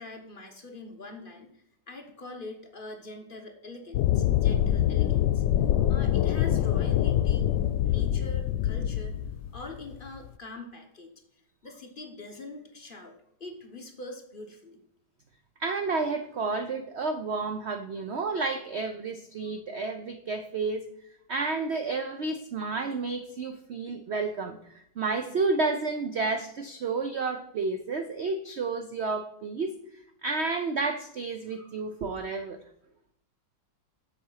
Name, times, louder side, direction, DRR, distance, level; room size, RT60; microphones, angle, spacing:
voice 1, 0.0-5.4 5.9-9.1 9.5-11.1 11.6-13.1 13.4-14.8, left 2 dB, 35° left, 4 dB, 1.0 m, -43 dB
sound 1, 3.9-10.3, left 11 dB, 85° left, 1.3 m, -25 dB
voice 2, 15.6-20.8 21.3-29.7 30.2-32.6, right 3 dB, 75° right, 8 dB, 0.6 m, -31 dB
7.6 x 7.0 x 5.6 m, 0.72 s
omnidirectional pair, 2.0 m